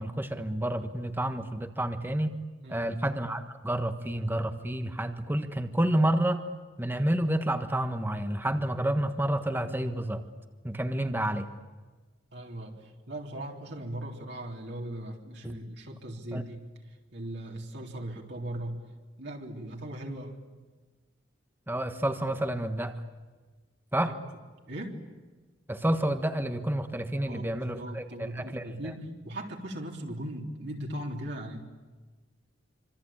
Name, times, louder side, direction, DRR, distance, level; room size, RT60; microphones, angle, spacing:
voice 1, 0.0-2.3 2.7-6.4 6.8-10.2 10.6-11.5 15.4-15.6 16.3-16.4 21.7-22.9 23.9-24.1 25.7-28.7, right 1 dB, 10° right, 8 dB, 1.4 m, -29 dB
voice 2, 2.6-2.9 12.3-16.6 17.1-18.8 19.2-20.4 24.1-24.2 24.7-25.0 27.3-31.6, right 1 dB, 60° right, 0 dB, 3.5 m, -38 dB
26.0 x 26.0 x 8.8 m, 1.3 s
head